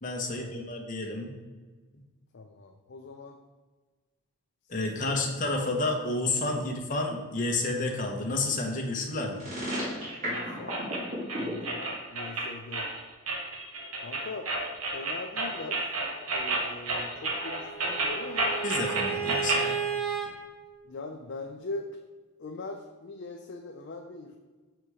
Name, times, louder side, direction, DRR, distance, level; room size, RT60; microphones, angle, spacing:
voice 1, 0.0-1.3 4.7-9.4 18.6-19.8, left 2 dB, 35° left, 1 dB, 1.1 m, -30 dB
voice 2, 2.3-3.4 5.1-5.2 6.5-6.6 10.2-10.8 11.3-12.9 14.0-14.5 14.9-15.8 16.3-18.6 20.9-21.9 22.4-24.4, left 3 dB, 50° left, 3 dB, 0.5 m, -41 dB
sound 1, 9.4-11.5, equal, 35° right, 2.3 m, -33 dB
sound 2, 9.7-19.7, right 2 dB, 75° right, 1.2 m, -32 dB
Bowed string instrument, 17.2-20.3, right 7 dB, ahead, 0.9 m, -34 dB
6.8 x 4.5 x 4.8 m, 1.3 s
head